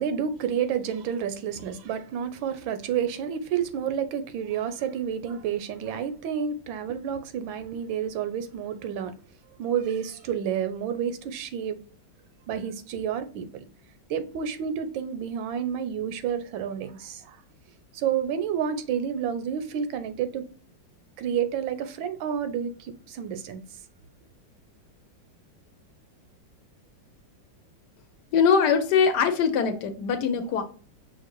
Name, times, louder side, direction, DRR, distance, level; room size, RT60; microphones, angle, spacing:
voice 1, 0.0-9.1 9.6-11.8 12.5-13.7 14.1-17.4 17.9-20.4 21.2-23.6, right 8 dB, 85° right, 1.4 m, -30 dB
voice 2, 28.3-30.6, left 6 dB, 70° left, 1.1 m, -22 dB
5.7 x 2.6 x 2.9 m
omnidirectional pair, 2.1 m